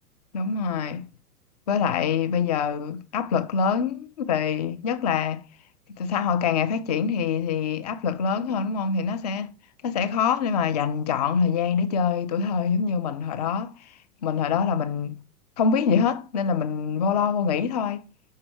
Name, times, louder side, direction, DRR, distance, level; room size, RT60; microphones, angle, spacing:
voice 1, 0.3-1.1 1.7-5.4 6.0-9.5 9.8-13.9 14.2-15.2 15.6-18.0, left 6 dB, 30° left, 0.4 m, -25 dB
5.4 x 4.8 x 4.6 m
figure-of-eight pair, 105°, 46 cm